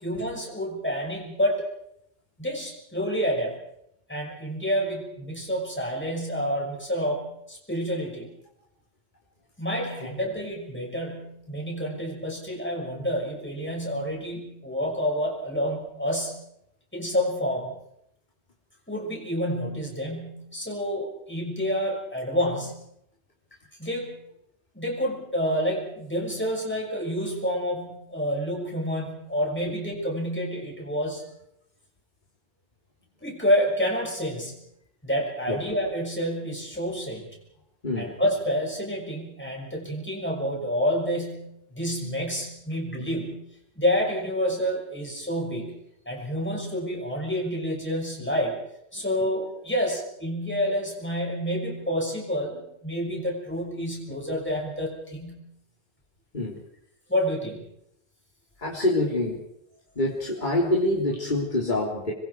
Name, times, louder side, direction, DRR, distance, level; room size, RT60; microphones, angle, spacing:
voice 1, 0.0-1.6 2.4-3.6 4.1-8.3 9.6-16.4 16.9-17.7 18.9-22.8 23.8-24.2 24.7-31.2 33.2-34.6 35.0-37.3 38.0-43.4 43.8-45.7 46.1-48.6 48.9-55.4 57.1-57.6, equal, 10° left, -2 dB, 5.9 m, -28 dB
voice 2, 58.6-59.4 60.0-62.1, left 1 dB, 45° left, -3 dB, 3.7 m, -25 dB
27.5 x 22.0 x 4.7 m, 0.76 s
omnidirectional pair, 1.1 m